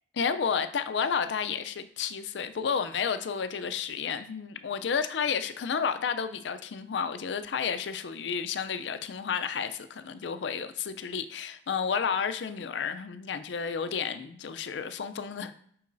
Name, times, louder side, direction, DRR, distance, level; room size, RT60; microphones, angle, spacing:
voice 1, 0.1-15.5, left 6 dB, 90° left, 11 dB, 0.4 m, -31 dB
8.4 x 4.7 x 2.6 m, 0.64 s
head